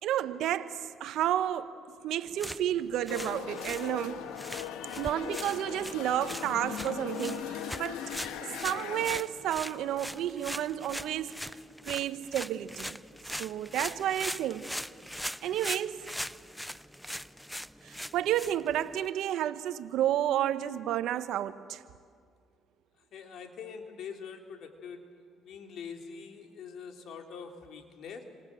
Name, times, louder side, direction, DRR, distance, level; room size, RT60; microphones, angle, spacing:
voice 1, 0.0-1.7 2.0-4.3 5.0-8.1 8.4-11.4 11.8-13.0 13.4-14.7 15.4-16.1 17.8-21.8, right 11 dB, 75° right, 1.2 m, -31 dB
sound 1, 2.3-19.1, equal, 5° left, 0.6 m, -41 dB
sound 2, 3.1-9.2, left 9 dB, 85° left, 1.7 m, -39 dB
voice 2, 23.1-25.0 25.5-28.2, left 6 dB, 65° left, 3.5 m, -44 dB
29.5 x 26.0 x 7.7 m
supercardioid pair, 80°, 0 cm